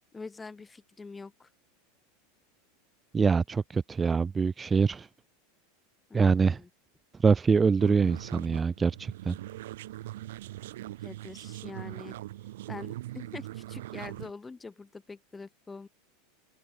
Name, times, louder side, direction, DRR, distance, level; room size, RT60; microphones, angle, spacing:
voice 1, 0.1-1.5 6.1-6.7 11.0-12.2 12.7-15.9, left 4 dB, 15° left, 2.7 m, -44 dB
voice 2, 3.1-5.1 6.1-6.6 7.2-9.3, right 5 dB, 20° right, 0.4 m, -24 dB
sound 1, 7.8-14.3, right 15 dB, 60° right, 5.9 m, -41 dB
open air
figure-of-eight pair, 80°, 0 cm